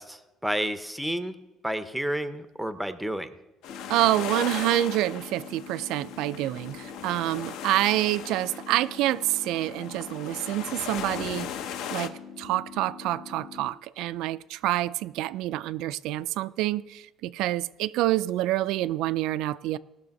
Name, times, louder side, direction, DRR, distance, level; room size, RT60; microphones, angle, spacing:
voice 1, 0.0-1.3 1.6-3.3, right 1 dB, ahead, 0.5 m, -30 dB
sound 1, 3.6-12.1, left 9 dB, 70° left, 0.8 m, -38 dB
sound 2, 3.7-13.7, left 6 dB, 35° left, 0.7 m, -45 dB
voice 2, 3.9-11.5 11.9-19.8, right 15 dB, 70° right, 0.3 m, -27 dB
18.5 x 6.4 x 5.2 m
cardioid pair, 175°, 0 cm